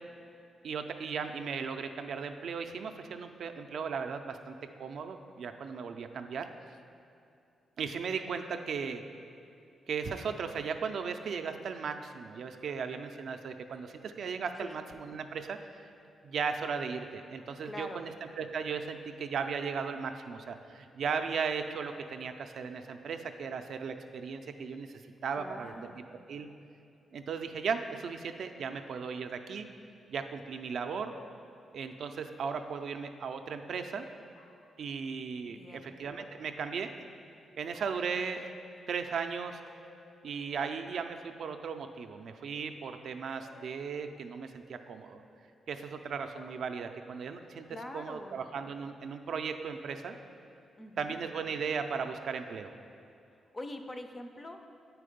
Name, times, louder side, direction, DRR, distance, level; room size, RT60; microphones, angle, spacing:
voice 1, 0.6-4.5 4.8-6.5 7.8-9.0 9.9-15.6 16.2-25.9 26.3-26.5 27.1-29.7 30.1-31.1 31.7-34.1 34.8-36.9 37.6-38.5 38.9-39.6 40.2-45.2 45.7-47.7 47.9-50.2 51.0-52.7, right 6 dB, 60° right, 7 dB, 0.4 m, -36 dB
voice 2, 17.6-18.1 25.4-26.1 35.4-36.0 47.7-48.4 50.8-51.2 53.5-54.7, left 1 dB, 20° left, 6 dB, 0.4 m, -44 dB
sound 1, 31.1-32.2 34.3-34.8 36.2-37.1 39.7-40.8 43.4-44.3 46.3-46.6, left 4 dB, 85° left, 0.7 m, -56 dB
8.3 x 4.6 x 5.1 m, 2.6 s
wide cardioid pair, 165°, 0 cm